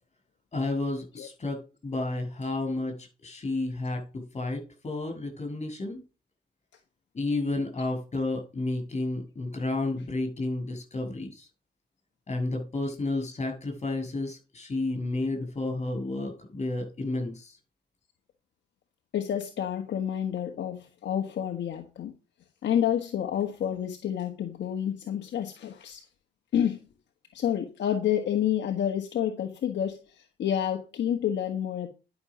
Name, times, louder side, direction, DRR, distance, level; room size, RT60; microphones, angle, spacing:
voice 1, 0.5-6.0 7.1-11.5 12.3-17.6, left 2 dB, 35° left, 7.5 m, -31 dB
voice 2, 19.1-22.1 22.6-26.0 26.5-26.8 27.3-31.9, left 9 dB, 60° left, 1.5 m, -29 dB
11.0 x 6.3 x 6.4 m
cardioid pair, 90°, 20 cm